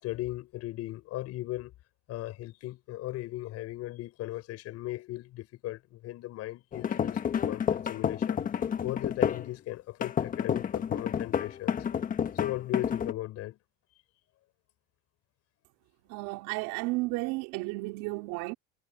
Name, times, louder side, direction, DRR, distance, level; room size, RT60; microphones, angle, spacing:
voice 1, 0.0-1.7 2.1-8.4 8.8-11.8 12.3-13.6, left 16 dB, 50° left, 6.7 m, -37 dB
sound 1, 6.7-9.5 10.0-13.1, left 8 dB, 25° left, 1.3 m, -30 dB
voice 2, 16.1-18.5, right 23 dB, 65° right, 4.3 m, -33 dB
cardioid pair, 145°, 33 cm